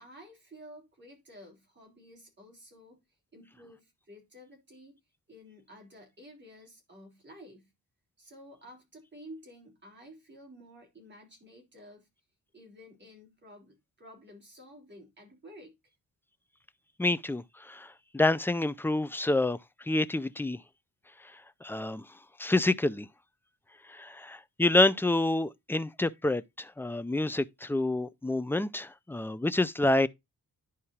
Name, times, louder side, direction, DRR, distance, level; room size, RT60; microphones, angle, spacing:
voice 1, 0.0-3.0 3.3-5.0 5.3-7.7 8.2-12.1 12.5-15.8, equal, 30° right, 3.9 m, -52 dB
voice 2, 17.0-19.6 19.9-20.6 21.6-22.0 22.4-23.1 23.9-30.1, left 2 dB, 5° left, 0.4 m, -28 dB
11.0 x 4.8 x 2.8 m
wide cardioid pair, 120°, 37 cm